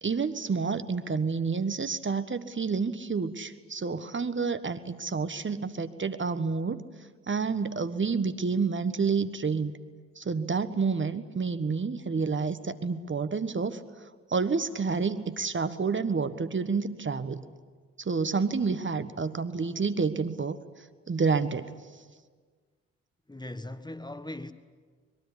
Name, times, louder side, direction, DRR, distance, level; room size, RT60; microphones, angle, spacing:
voice 1, 0.0-6.8 7.3-9.7 10.2-13.8 14.3-17.4 18.0-20.6 21.1-21.7, right 5 dB, 35° right, 1.4 m, -29 dB
voice 2, 23.3-24.5, left 1 dB, 10° left, 1.4 m, -39 dB
24.5 x 22.0 x 10.0 m
hypercardioid pair, 40°, 35 cm